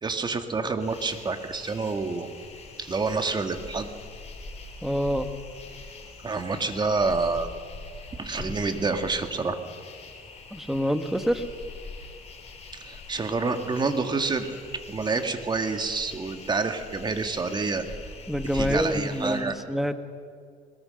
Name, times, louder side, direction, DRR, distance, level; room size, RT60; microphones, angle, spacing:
voice 1, 0.0-2.3 2.8-3.9 6.2-7.5 8.2-9.6 12.7-17.8 18.5-19.6, right 4 dB, 25° right, 7 dB, 1.8 m, -28 dB
sound 1, 0.8-19.4, left 3 dB, 40° left, 3.8 m, -43 dB
voice 2, 4.8-5.3 10.5-11.4 18.3-19.9, equal, ahead, 9 dB, 1.3 m, -26 dB
21.5 x 20.0 x 6.5 m, 2.2 s
cardioid pair, 110°, 17 cm